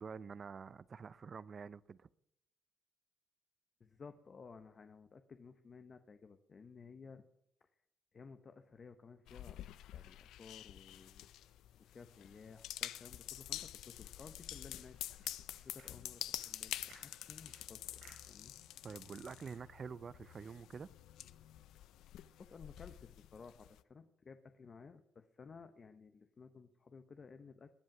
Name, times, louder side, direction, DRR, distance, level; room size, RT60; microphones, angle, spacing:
voice 1, 0.0-2.1 18.8-20.9, right 6 dB, 45° right, 0.5 m, -47 dB
voice 2, 3.8-7.2 7.6-7.7 8.1-9.6 9.9-11.3 11.8-15.0 15.6-18.6 22.4-27.7, left 5 dB, 40° left, 0.9 m, -56 dB
sound 1, 9.3-23.8, left 13 dB, 85° left, 0.5 m, -48 dB
sound 2, 14.7-19.9, right 5 dB, 85° right, 6.4 m, -67 dB
20.5 x 7.7 x 6.0 m
cardioid pair, 95°, 0 cm